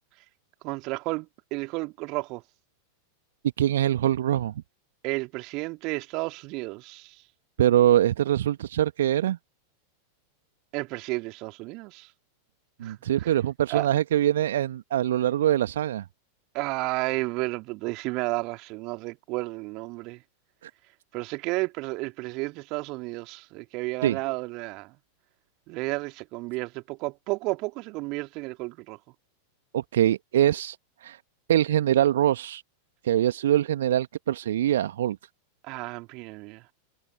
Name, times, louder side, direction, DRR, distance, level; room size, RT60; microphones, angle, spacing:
voice 1, 0.6-2.4 5.0-7.2 10.7-12.1 12.8-13.3 13.7-13.9 16.5-20.2 21.1-24.9 25.7-29.0 35.6-36.6, right 24 dB, 40° right, 2.5 m, -32 dB
voice 2, 3.6-4.5 7.6-9.4 12.8-16.0 20.6-20.7 24.0-24.2 29.7-30.8 31.0-31.2 31.5-32.6 33.0-35.2, right 11 dB, 60° right, 1.5 m, -23 dB
figure-of-eight pair, 90°, 0 cm